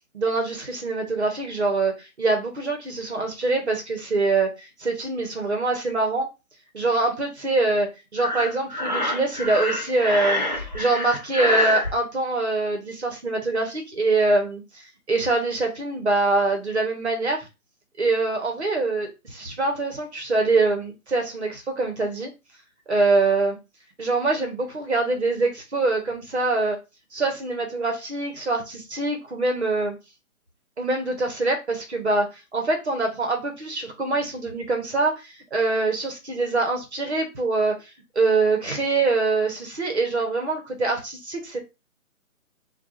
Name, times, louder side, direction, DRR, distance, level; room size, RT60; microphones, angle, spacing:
voice 1, 0.1-6.3 6.7-10.4 10.7-17.5 18.0-22.3 22.9-23.6 24.0-26.8 27.1-29.9 30.8-37.9 38.1-41.6, right 3 dB, 50° right, 4 dB, 1.0 m, -24 dB
Breathing, 8.2-11.9, left 1 dB, 30° right, 0.5 m, -26 dB
4.3 x 2.4 x 2.5 m, 0.26 s
hypercardioid pair, 180°, 43 cm